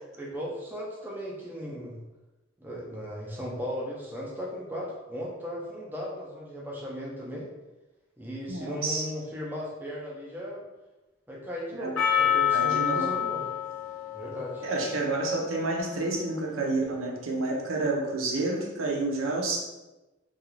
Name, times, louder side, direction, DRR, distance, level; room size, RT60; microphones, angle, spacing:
voice 1, 0.1-2.0 2.6-7.5 8.2-10.7 11.3-13.4 14.1-14.6, equal, 10° right, -4 dB, 0.4 m, -36 dB
voice 2, 8.5-9.1 11.8-12.0 12.5-13.2 14.6-19.6, right 2 dB, 75° right, -1 dB, 0.5 m, -29 dB
Percussion, 12.0-16.4, left 9 dB, 80° left, 0.6 m, -29 dB
2.4 x 2.3 x 3.1 m, 1.0 s
head